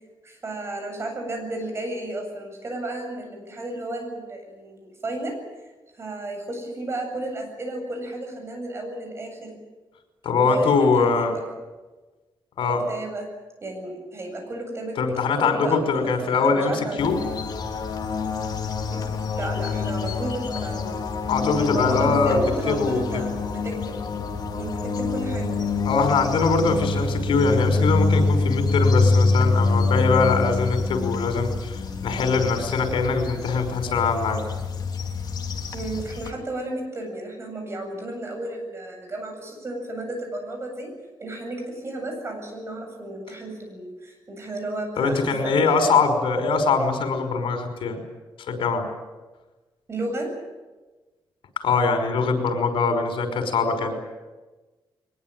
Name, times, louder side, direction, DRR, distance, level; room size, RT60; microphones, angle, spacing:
voice 1, 0.2-5.4 5.9-9.6 10.4-11.3 12.9-13.3 13.6-17.1 18.9-19.0 19.3-21.0 21.6-24.0 24.5-25.6 35.7-40.9 41.2-45.7 49.9-50.3, right 1 dB, 30° right, 3 dB, 8.0 m, -33 dB
voice 2, 10.2-11.4 12.6-12.8 15.0-17.2 21.3-22.4 22.7-23.3 25.8-34.4 45.0-48.0 48.5-48.9 51.6-54.0, left 4 dB, 85° left, 6 dB, 5.5 m, -22 dB
sound 1, 17.0-36.3, left 3 dB, 50° left, 3.3 m, -26 dB
22.5 x 21.0 x 9.2 m, 1.2 s
wide cardioid pair, 160°, 9 cm